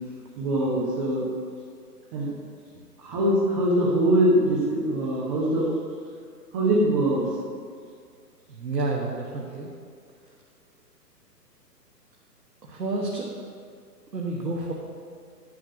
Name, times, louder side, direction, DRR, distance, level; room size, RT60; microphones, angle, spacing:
voice 1, 0.4-1.2 2.1-2.3 3.0-5.7 6.5-7.2, right 1 dB, 10° right, -6 dB, 0.7 m, -22 dB
voice 2, 8.5-9.7 12.7-13.3 14.1-14.7, right 2 dB, 75° right, -2 dB, 1.5 m, -29 dB
10.5 x 6.1 x 5.9 m, 2.1 s
figure-of-eight pair, 125°, 49 cm